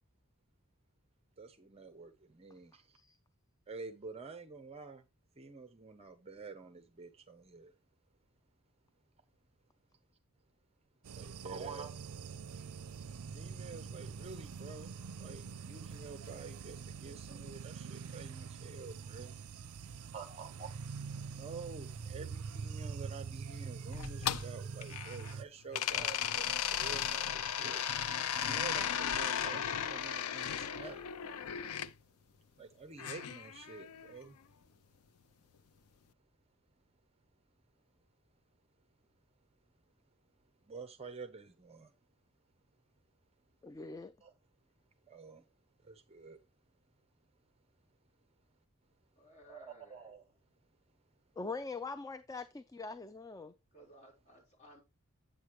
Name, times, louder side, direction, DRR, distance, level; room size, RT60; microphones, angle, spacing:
voice 1, 1.4-3.0 3.7-5.1 5.4-7.7 11.2-11.9 12.5-12.7 13.3-14.9 15.2-19.4 20.1-20.7 21.3-27.9 28.4-31.1 32.6-34.4 40.6-41.9 44.2-44.3 45.1-45.4 45.8-46.4 49.5-50.2, right 4 dB, 25° right, 0.7 m, -48 dB
sound 1, 11.0-25.4, right 5 dB, 80° right, 0.5 m, -44 dB
sound 2, 23.9-25.3 25.7-31.9 33.0-34.1, left 9 dB, 80° left, 0.5 m, -36 dB
voice 2, 43.6-44.1 51.4-53.5, left 3 dB, 15° left, 0.3 m, -42 dB
voice 3, 49.1-50.1 53.7-54.8, right 1 dB, 30° left, 4.1 m, -59 dB
8.3 x 8.1 x 3.0 m
head